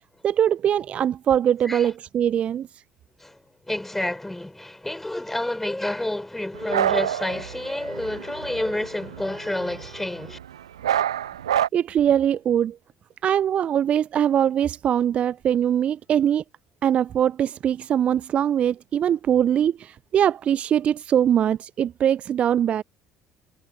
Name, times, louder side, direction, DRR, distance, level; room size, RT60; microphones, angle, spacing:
voice 1, 0.2-2.8 11.7-12.8 13.2-16.4 16.8-22.8, right 9 dB, 45° right, 0.5 m, -22 dB
voice 2, 3.2-10.4, left 1 dB, 10° left, 5.6 m, -29 dB
sound 1, 6.5-10.5 10.8-11.7, right 10 dB, 80° right, 0.9 m, -27 dB
figure-of-eight pair, 55°, 3 cm